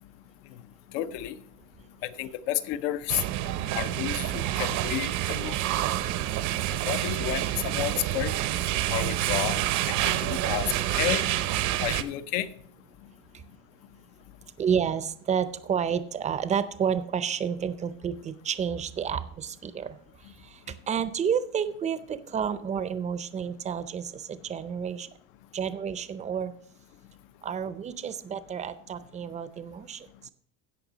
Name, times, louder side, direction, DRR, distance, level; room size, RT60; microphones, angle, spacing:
voice 1, 0.9-1.4 2.0-3.2 3.7-5.6 6.9-8.3 8.9-9.6 9.9-11.3 11.8-12.5, left 13 dB, 75° left, 13 dB, 0.8 m, -31 dB
sound 1, 3.1-12.0, right 13 dB, 55° right, 0.7 m, -28 dB
voice 2, 14.6-20.0 20.4-25.1 25.5-26.5 27.4-30.3, right 7 dB, 20° right, 13 dB, 0.5 m, -30 dB
16.5 x 5.6 x 4.0 m, 0.63 s
cardioid pair, 150°, 34 cm